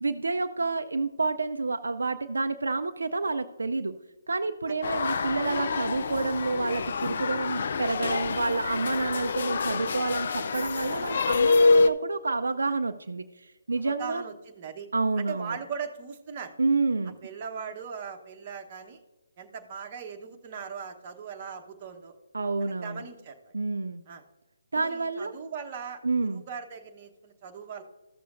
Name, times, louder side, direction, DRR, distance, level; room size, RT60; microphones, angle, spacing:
voice 1, 0.0-4.0 4.3-14.2 14.9-15.6 16.6-17.2 22.3-23.0 23.5-24.0 24.7-25.3 26.0-26.4, right 3 dB, 70° right, 8 dB, 0.5 m, -29 dB
sound 1, 4.8-11.9, left 4 dB, 50° left, 0.4 m, -26 dB
voice 2, 13.7-14.9 15.2-16.5 17.2-19.0 19.4-22.1 22.6-23.5 24.1-24.2 24.7-27.8, right 6 dB, 30° right, 3 dB, 1.0 m, -39 dB
14.5 x 6.8 x 2.5 m, 1.1 s
figure-of-eight pair, 145°, 0 cm